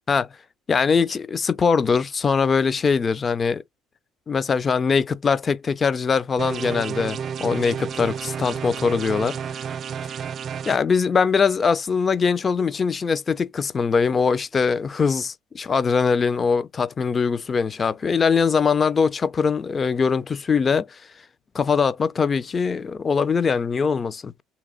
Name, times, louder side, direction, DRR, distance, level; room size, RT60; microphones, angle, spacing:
voice 1, 0.7-3.6 4.3-9.4 10.7-21.0 21.5-24.3, left 5 dB, 30° left, 0.5 m, -22 dB
sound 1, 6.4-10.8, right 7 dB, 50° right, 0.3 m, -31 dB
3.1 x 3.0 x 3.7 m
cardioid pair, 100°, 0 cm